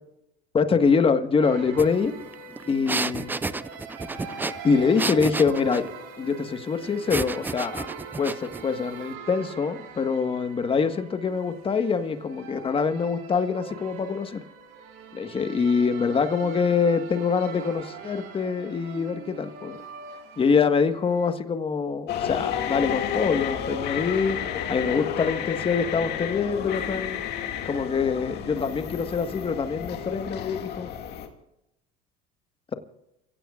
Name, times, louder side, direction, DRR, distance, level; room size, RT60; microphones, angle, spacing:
voice 1, 0.5-2.1 2.7-3.3 4.6-5.9 6.2-7.9 8.2-14.4 15.1-19.8 20.4-24.4 24.7-27.2 27.6-30.9, left 5 dB, 25° left, 9 dB, 1.6 m, -24 dB
sound 1, 1.4-21.3, right 5 dB, 75° right, 4.6 m, -42 dB
sound 2, 1.8-1.9 2.2-5.9 7.1-8.6, right 3 dB, 10° right, 0.5 m, -31 dB
sound 3, 22.1-31.3, left 9 dB, 55° left, 2.4 m, -31 dB
29.0 x 16.5 x 2.5 m, 0.87 s
supercardioid pair, 100°, 20 cm